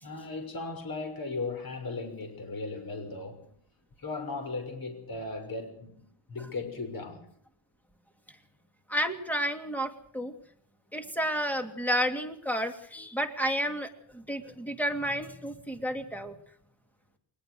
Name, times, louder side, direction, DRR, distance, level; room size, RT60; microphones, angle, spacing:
voice 1, 0.0-3.5 4.0-7.3, left 3 dB, 45° left, 6.3 m, -37 dB
voice 2, 8.9-10.3 10.9-16.4, equal, 5° left, 2.6 m, -31 dB
22.0 x 20.0 x 6.4 m
wide cardioid pair, 145°, 48 cm